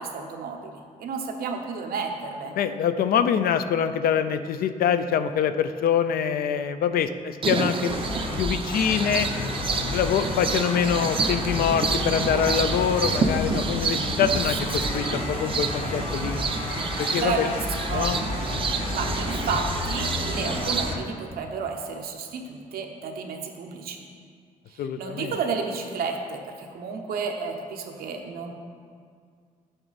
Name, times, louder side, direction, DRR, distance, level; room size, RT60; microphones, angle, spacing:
voice 1, 0.0-2.6 17.2-18.1 18.9-24.0 24.7-28.5, right 5 dB, 90° right, 3 dB, 0.9 m, -32 dB
voice 2, 2.5-7.9 8.4-9.3 9.7-16.4 17.0-17.5 17.9-18.2 24.8-25.3, left 8 dB, 80° left, 10 dB, 0.4 m, -25 dB
sound 1, 7.4-20.9, right 5 dB, 35° right, 0.5 m, -29 dB
sound 2, 7.9-21.0, left 2 dB, 40° left, 0.9 m, -31 dB
7.8 x 7.8 x 4.1 m, 2.1 s
cardioid pair, 140°, 15 cm